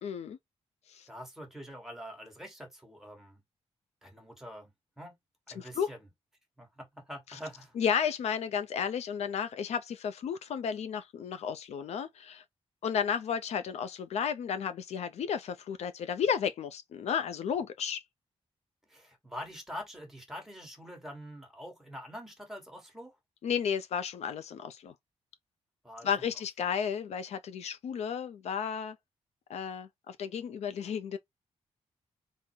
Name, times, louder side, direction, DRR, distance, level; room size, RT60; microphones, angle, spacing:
voice 1, 0.0-0.4 0.9-1.1 5.6-5.9 7.3-7.4 7.8-12.4 12.8-18.0 23.4-24.9 26.0-29.0 29.5-31.2, left 7 dB, 75° left, 0.4 m, -33 dB
voice 2, 1.1-3.4 4.0-5.2 5.5-6.1 6.6-7.7 18.9-23.1 25.8-26.1, equal, 5° right, 1.2 m, -45 dB
3.7 x 2.1 x 4.2 m
wide cardioid pair, 150°, 11 cm